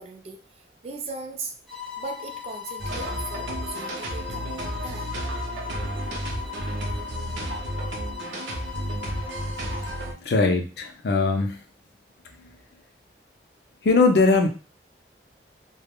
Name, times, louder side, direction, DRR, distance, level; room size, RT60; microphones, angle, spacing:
voice 1, 0.0-1.5 2.0-5.1 10.4-10.5, right 3 dB, 35° right, 4 dB, 0.4 m, -38 dB
sound 1, 1.7-10.0, left 8 dB, ahead, 0.8 m, -38 dB
sound 2, 2.8-10.1, right 1 dB, 85° right, 0.6 m, -32 dB
voice 2, 10.2-11.6 12.4-12.5 13.8-14.5, left 3 dB, 65° left, 5 dB, 0.4 m, -20 dB
3.3 x 2.0 x 2.2 m, 0.35 s
head